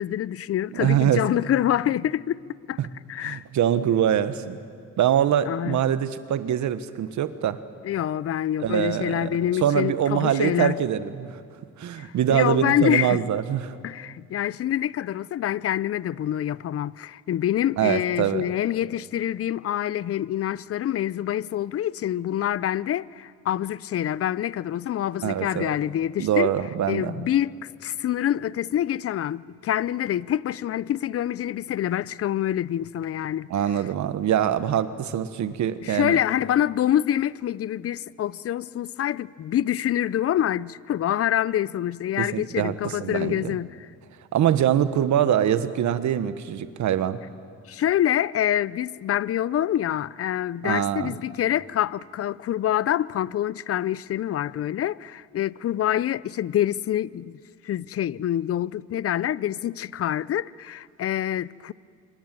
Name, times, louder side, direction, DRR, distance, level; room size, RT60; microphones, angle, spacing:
voice 1, 0.0-2.8 3.1-3.4 5.5-5.8 7.8-10.8 12.0-13.2 13.8-26.5 26.9-33.5 35.8-43.9 47.7-57.4 57.6-61.7, left 11 dB, 50° left, 0.6 m, -26 dB
voice 2, 0.7-1.2 2.8-2.9 3.2-4.6 5.0-7.6 8.6-9.3 9.6-11.4 11.8-13.8 17.8-18.4 25.2-25.7 26.2-27.2 33.5-36.2 42.2-43.6 44.3-47.2 50.6-51.1, right 10 dB, 70° right, 1.3 m, -24 dB
26.5 x 25.0 x 7.6 m
cardioid pair, 90°, 30 cm